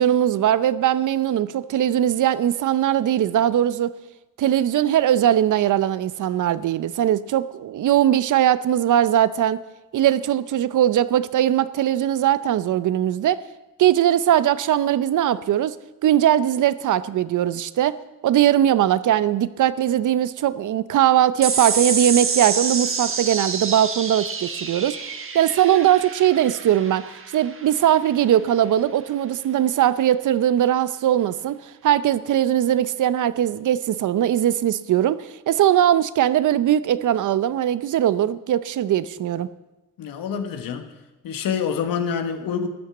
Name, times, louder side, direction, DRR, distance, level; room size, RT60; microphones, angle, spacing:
voice 1, 0.0-3.9 4.4-9.6 9.9-13.4 13.8-15.7 16.0-17.9 18.2-25.0 25.3-27.0 27.3-31.6 31.8-35.2 35.5-39.5, right 11 dB, 65° right, 15 dB, 0.7 m, -20 dB
sound 1, 21.4-28.2, right 5 dB, 40° right, 1.4 m, -28 dB
voice 2, 40.0-40.9 41.2-42.7, left 7 dB, 85° left, 7 dB, 1.5 m, -26 dB
12.5 x 10.5 x 7.2 m, 1.0 s
cardioid pair, 115°, 33 cm